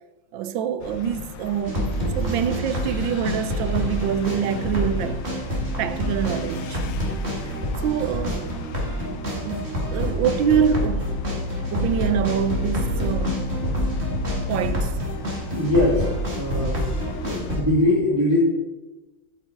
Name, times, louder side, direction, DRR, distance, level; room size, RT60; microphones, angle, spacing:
voice 1, 0.3-5.3 5.8-7.2 7.8-8.5 9.1-11.2 11.7-13.6 14.5-15.0, right 8 dB, 85° right, 1.4 m, -26 dB
sound 1, 0.8-17.6, left 7 dB, 80° left, 1.4 m, -39 dB
sound 2, 1.6-17.6, equal, 35° right, 2.2 m, -27 dB
voice 2, 15.5-16.8 17.2-18.4, left 2 dB, 15° right, 2.4 m, -22 dB
12.0 x 5.9 x 4.6 m
omnidirectional pair, 2.0 m